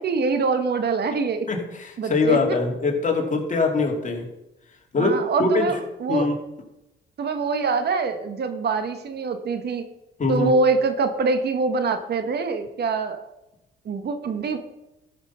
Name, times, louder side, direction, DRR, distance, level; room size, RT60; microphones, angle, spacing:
voice 1, 0.0-1.5 2.0-2.4 5.0-6.3 7.2-9.8 10.3-13.2 13.8-14.6, right 4 dB, 55° right, 8 dB, 1.3 m, -24 dB
voice 2, 1.5-4.3 4.9-5.7 6.1-6.3 10.2-10.5, left 3 dB, 40° left, 1 dB, 2.6 m, -23 dB
13.0 x 6.0 x 5.6 m, 0.94 s
cardioid pair, 90°, 20 cm